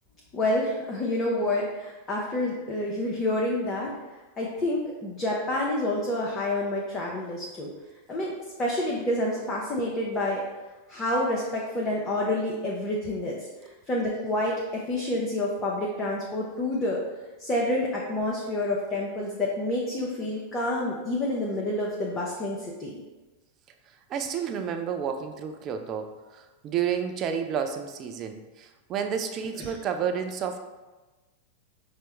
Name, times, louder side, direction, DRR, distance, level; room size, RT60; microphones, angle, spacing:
voice 1, 0.3-3.9 4.4-7.7 8.1-8.3 8.6-10.4 10.9-13.5 13.9-17.0 17.4-23.0 29.6-29.7, left 1 dB, 20° left, -3 dB, 0.6 m, -28 dB
voice 2, 24.1-30.6, right 7 dB, 30° right, 6 dB, 0.3 m, -31 dB
5.4 x 2.0 x 2.9 m, 1.2 s
figure-of-eight pair, 90°, 0 cm